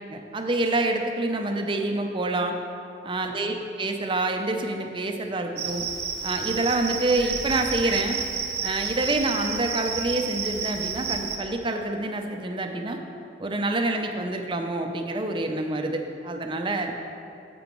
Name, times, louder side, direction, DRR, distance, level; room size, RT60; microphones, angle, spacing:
voice 1, 0.1-2.6 3.0-5.9 6.2-8.2 8.6-13.0 13.4-16.9, right 2 dB, 25° right, 4 dB, 0.6 m, -27 dB
Cricket, 5.6-11.4, right 6 dB, 55° right, 0.8 m, -31 dB
10.5 x 7.8 x 3.1 m, 2.8 s
head